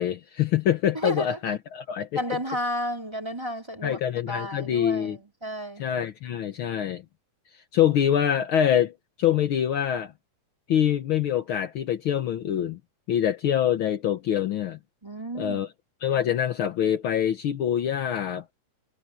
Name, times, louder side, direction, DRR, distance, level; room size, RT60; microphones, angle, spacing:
voice 1, 0.0-2.2 3.8-5.2 5.8-7.0 7.7-10.1 10.7-12.8 13.1-14.8 15.3-15.7 16.0-18.5, left 10 dB, 85° left, 1.1 m, -25 dB
voice 2, 0.9-1.3 2.2-5.8 15.0-15.6, left 1 dB, 10° right, 3.6 m, -32 dB
omnidirectional pair, 3.8 m